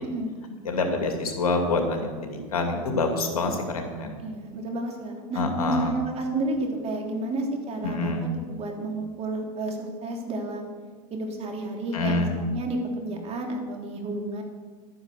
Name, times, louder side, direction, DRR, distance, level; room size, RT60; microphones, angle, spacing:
voice 1, 0.0-0.5 4.2-10.7 11.1-14.4, right 2 dB, 35° right, 2 dB, 3.1 m, -31 dB
voice 2, 0.6-4.2 5.3-5.9 7.8-8.2 11.9-12.3, left 3 dB, 90° left, 3 dB, 2.6 m, -26 dB
12.0 x 9.8 x 6.8 m, 1.5 s
hypercardioid pair, 105°, 18 cm